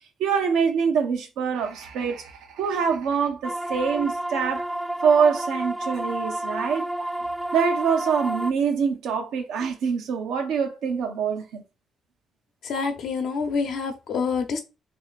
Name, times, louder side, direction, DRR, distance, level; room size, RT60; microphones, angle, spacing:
voice 1, 0.2-4.7 5.0-6.9 7.5-11.6, right 6 dB, 80° right, 0.8 m, -24 dB
sound 1, 3.4-8.5, right 1 dB, 5° right, 0.3 m, -30 dB
voice 2, 12.6-14.6, left 5 dB, 70° left, 0.9 m, -27 dB
3.2 x 2.9 x 4.1 m
supercardioid pair, 55°, 0 cm